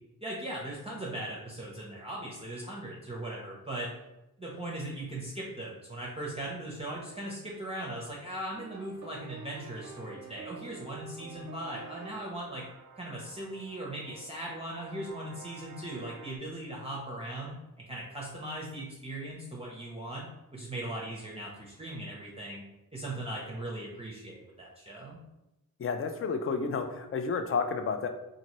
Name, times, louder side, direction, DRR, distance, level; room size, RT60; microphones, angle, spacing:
voice 1, 0.2-3.9 4.4-12.6 13.0-17.6 17.9-20.3 20.5-22.6 22.9-25.2, right 1 dB, 15° right, -4 dB, 0.6 m, -39 dB
sound 1, 8.5-16.4, right 4 dB, 55° right, 0.5 m, -49 dB
voice 2, 25.8-28.1, left 5 dB, 40° left, 7 dB, 0.4 m, -31 dB
2.7 x 2.6 x 3.0 m, 0.95 s
cardioid pair, 60°, 36 cm